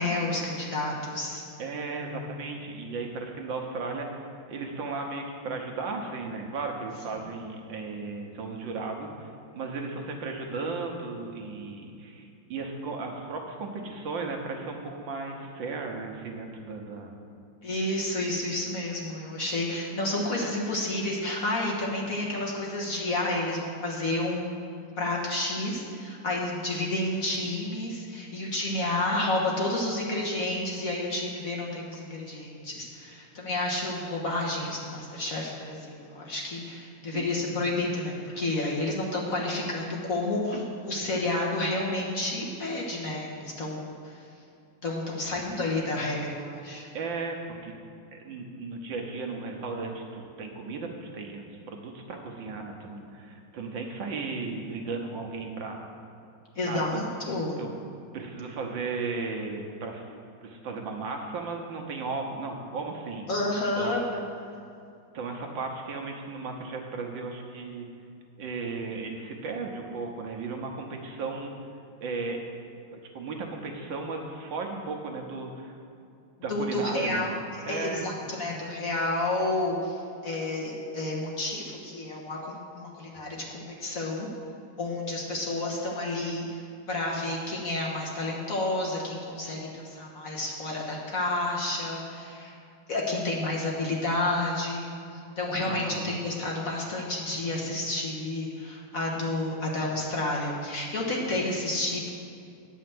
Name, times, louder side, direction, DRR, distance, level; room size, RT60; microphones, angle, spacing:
voice 1, 0.0-1.4 17.6-43.8 44.0-44.2 44.8-46.9 56.5-57.6 63.3-64.2 76.5-77.3 77.7-84.3 84.8-92.5 92.9-102.1, left 2 dB, 45° left, -3 dB, 1.5 m, -30 dB
voice 2, 1.6-17.1 37.1-37.5 45.3-45.4 46.9-47.7 48.1-55.9 56.6-57.1 57.6-57.7 58.1-60.1 60.4-63.3 63.7-63.9 65.1-67.9 68.4-71.5 72.0-72.4 73.1-75.8 76.4-77.4 77.7-78.1 95.7-96.2, right 4 dB, 70° right, 2 dB, 1.6 m, -35 dB
9.5 x 5.6 x 7.7 m, 2.5 s
omnidirectional pair, 2.2 m